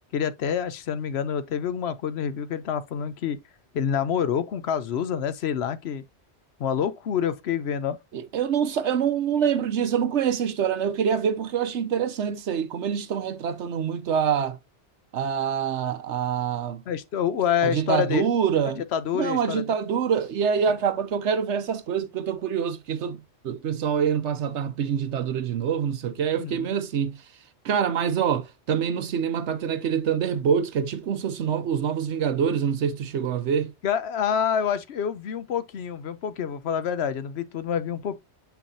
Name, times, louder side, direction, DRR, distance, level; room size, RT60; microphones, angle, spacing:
voice 1, 0.1-3.4 3.7-6.0 6.6-8.0 16.9-18.3 18.9-19.6 26.4-26.7 33.8-38.2, left 8 dB, 65° left, 0.9 m, -27 dB
voice 2, 8.1-14.6 15.1-16.8 17.6-18.8 19.1-27.2 27.6-33.7, right 7 dB, 75° right, 1.1 m, -25 dB
7.0 x 5.8 x 2.7 m
omnidirectional pair, 1.2 m